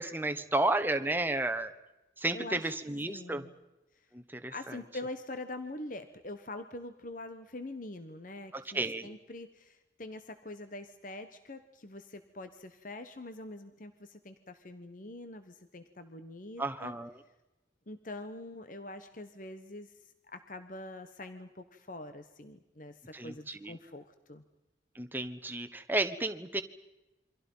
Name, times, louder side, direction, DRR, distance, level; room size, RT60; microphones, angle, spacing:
voice 1, 0.0-1.7 2.2-3.4 4.1-4.8 8.5-9.1 16.6-17.2 23.1-23.8 24.9-26.6, right 2 dB, 10° right, 7 dB, 1.3 m, -32 dB
voice 2, 2.3-2.7 3.1-3.5 4.5-16.9 17.9-24.4, left 2 dB, 50° left, 9 dB, 1.2 m, -44 dB
28.5 x 24.5 x 5.6 m, 1.0 s
head